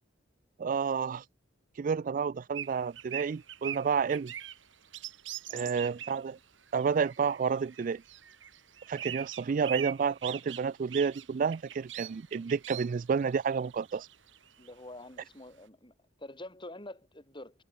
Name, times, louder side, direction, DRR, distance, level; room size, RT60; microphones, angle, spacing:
voice 1, 0.6-1.2 1.8-4.3 5.5-6.4 6.7-8.0 8.9-14.1, right 6 dB, 45° right, 0.3 m, -30 dB
sound 1, 2.5-6.2 6.6-14.7, right 11 dB, 80° right, 2.4 m, -42 dB
voice 2, 14.6-17.5, left 1 dB, 25° left, 5.7 m, -47 dB
head